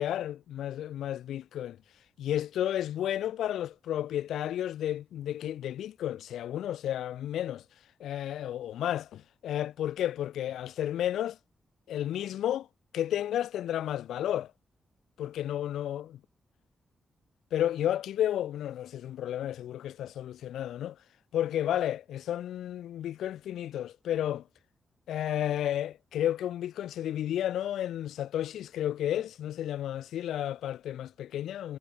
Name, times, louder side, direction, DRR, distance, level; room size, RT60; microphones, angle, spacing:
voice 1, 0.0-1.8 2.2-7.6 8.0-11.4 11.9-12.7 12.9-14.5 15.2-16.1 17.5-21.0 21.3-24.4 25.1-31.8, left 11 dB, 85° left, 0.4 m, -32 dB
supercardioid pair, 45°, 0 cm